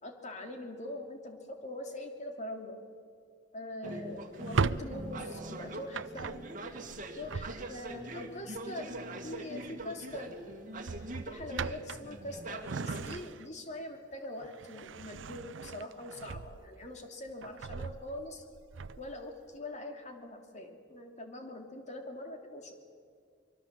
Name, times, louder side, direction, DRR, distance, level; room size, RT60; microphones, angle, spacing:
voice 1, 0.0-2.8 3.5-6.4 7.2-9.0 9.2-10.4 11.3-18.4 19.0-22.8, left 1 dB, 40° left, 4 dB, 2.9 m, -43 dB
sound 1, 3.8-13.2, right 1 dB, 45° right, 2.2 m, -43 dB
Drawer open or close, 4.3-8.0 9.5-9.8 10.1-10.3 10.8-13.7 14.1-16.9 17.3-19.2, right 5 dB, 75° right, 0.5 m, -38 dB
24.5 x 23.5 x 7.5 m, 2.2 s
head